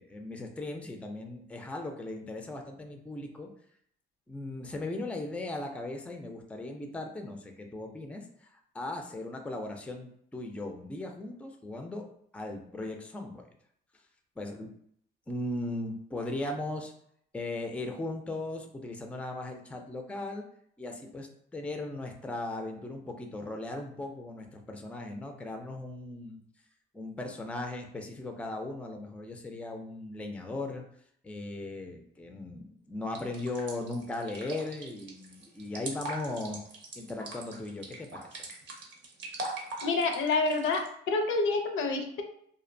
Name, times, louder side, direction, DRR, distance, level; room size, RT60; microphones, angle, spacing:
voice 1, 0.0-3.5 4.3-12.0 12.3-13.5 14.4-14.7 15.3-16.9 17.3-20.4 20.8-26.4 26.9-30.8 31.2-36.7 37.0-38.3, left 2 dB, 5° left, 4 dB, 0.3 m, -38 dB
sound 1, 33.1-40.9, right 2 dB, 70° right, 0.6 m, -41 dB
voice 2, 39.8-42.2, left 3 dB, 75° left, 4 dB, 0.5 m, -28 dB
2.5 x 2.1 x 2.5 m, 0.66 s
cardioid pair, 90°, 20 cm